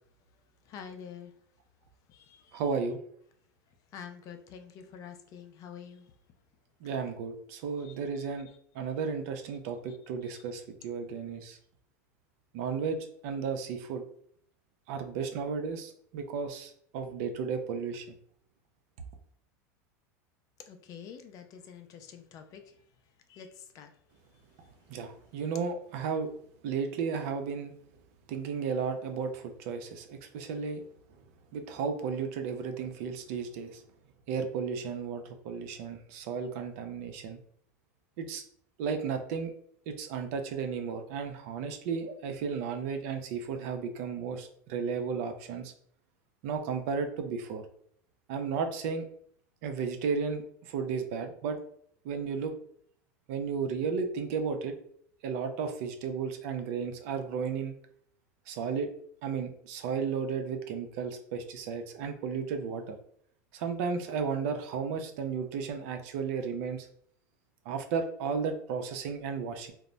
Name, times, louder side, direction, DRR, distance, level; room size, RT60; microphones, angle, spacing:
voice 1, 0.7-1.3 2.1-2.6 3.9-6.1 7.8-8.6 9.9-10.0 10.2-10.4 20.6-22.8 23.3-23.9, left 7 dB, 45° left, 7 dB, 0.4 m, -48 dB
voice 2, 2.5-3.0 6.8-8.5 8.8-11.6 12.5-13.0 13.2-14.0 14.9-18.1 24.9-26.3 26.6-27.7 28.3-30.8 31.5-33.8 34.3-37.4 38.2-38.4 38.8-39.5 39.9-45.7 46.4-47.6 48.3-49.1 49.6-51.6 52.0-52.5 53.3-54.8 55.2-57.7 58.5-58.9 59.2-63.0 63.5-66.9 67.7-69.7, right 5 dB, 65° right, 6 dB, 0.5 m, -34 dB
2.1 x 2.0 x 3.8 m, 0.63 s
supercardioid pair, 110°, 8 cm